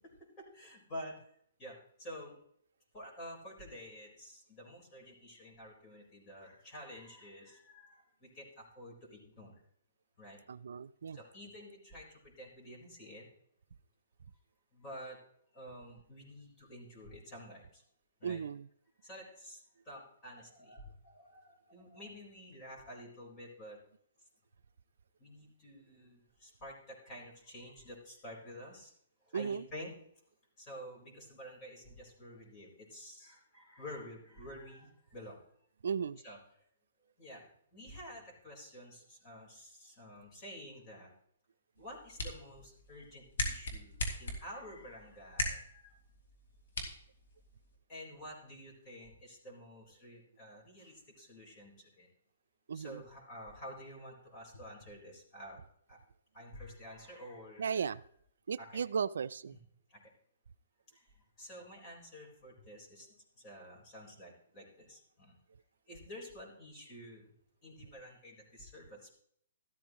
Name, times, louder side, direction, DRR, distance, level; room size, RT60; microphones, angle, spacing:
voice 1, 0.4-1.2 1.6-2.4 2.9-9.5 10.2-10.4 11.1-13.3 14.7-15.2 15.5-17.8 18.2-18.4 19.0-23.8 25.2-28.9 29.3-29.9 30.6-35.4 36.2-36.4 37.2-41.1 41.8-46.0 47.9-52.1 52.7-55.6 55.9-56.0 56.3-57.9 58.6-58.8 59.9-60.0 60.9-63.1 63.4-65.4 65.9-67.3 67.6-69.1, equal, 25° left, -2 dB, 4.3 m, -50 dB
voice 2, 10.5-11.2 18.2-18.7 29.3-29.7 35.8-36.2 52.7-53.0 57.6-58.0 58.5-59.6, right 6 dB, 75° right, 14 dB, 0.4 m, -36 dB
sound 1, 41.8-47.8, left 1 dB, 85° left, 3.3 m, -41 dB
14.0 x 13.0 x 3.1 m, 0.66 s
hypercardioid pair, 160°, 0 cm